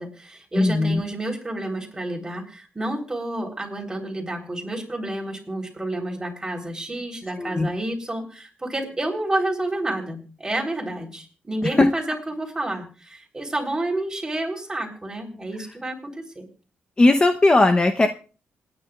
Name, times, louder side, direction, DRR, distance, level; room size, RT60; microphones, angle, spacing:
voice 1, 0.0-16.5, right 1 dB, 15° right, 1 dB, 3.6 m, -30 dB
voice 2, 0.5-1.0 7.4-7.7 11.6-11.9 15.6-15.7 17.0-18.1, left 2 dB, 20° left, 7 dB, 0.8 m, -18 dB
27.0 x 9.8 x 2.4 m, 0.36 s
cardioid pair, 115°, 4 cm